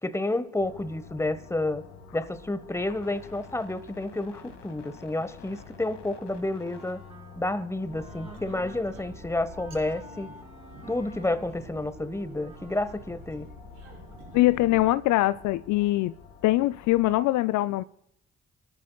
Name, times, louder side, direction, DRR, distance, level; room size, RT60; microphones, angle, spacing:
voice 1, 0.0-1.8 2.1-7.0 7.4-10.3 10.9-13.5, left 2 dB, 10° left, 1.2 m, -30 dB
sound 1, 0.6-17.3, left 6 dB, 80° left, 2.3 m, -49 dB
Wind instrument woodwind instrument, 6.7-13.3, right 1 dB, 20° right, 4.8 m, -51 dB
sound 2, 7.8-14.9, equal, 80° right, 6.6 m, -46 dB
voice 2, 14.3-16.1 16.4-17.8, left 17 dB, 60° left, 0.5 m, -23 dB
28.5 x 13.0 x 2.3 m
hypercardioid pair, 45°, 34 cm